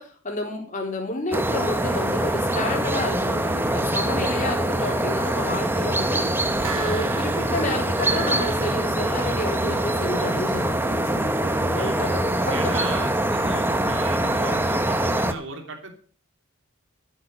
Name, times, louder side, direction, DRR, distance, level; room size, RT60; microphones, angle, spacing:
voice 1, 0.0-13.0, left 2 dB, 35° left, 0 dB, 4.1 m, -30 dB
sound 1, 1.3-15.3, right 1 dB, 10° right, 1.0 m, -24 dB
sound 2, 6.3-9.8 10.2-10.3, right 6 dB, 85° right, 4.6 m, -36 dB
voice 2, 11.8-12.1 12.5-15.9, right 2 dB, 55° right, 5 dB, 3.0 m, -36 dB
13.5 x 9.2 x 6.4 m, 0.43 s
head